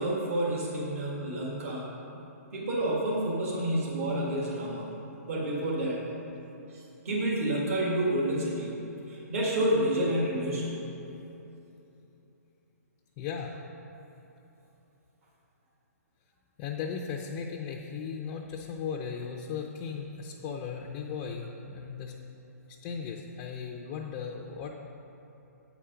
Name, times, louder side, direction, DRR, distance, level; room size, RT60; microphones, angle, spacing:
voice 1, 0.0-1.9 2.5-4.8 5.3-6.0 6.7-8.7 9.1-10.7, right 1 dB, 55° right, -4 dB, 1.8 m, -29 dB
voice 2, 13.2-13.5 16.6-22.1 22.7-24.7, left 6 dB, 20° left, 0 dB, 0.4 m, -37 dB
8.5 x 5.0 x 5.7 m, 3.0 s
hypercardioid pair, 160°, 9 cm